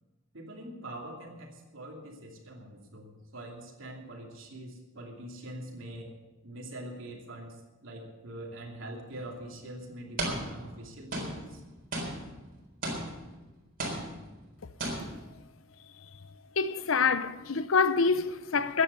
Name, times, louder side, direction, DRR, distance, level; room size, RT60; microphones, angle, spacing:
voice 1, 0.3-6.1 6.4-7.6 7.8-11.6, right 1 dB, 80° right, 2.7 m, -43 dB
sound 1, 9.1-9.3 10.2-10.8 11.1-13.4 13.8-14.5 14.8-15.4, right 1 dB, 45° right, 4.0 m, -36 dB
voice 2, 16.6-18.8, left 5 dB, 85° left, 0.7 m, -26 dB
14.5 x 9.7 x 6.8 m
head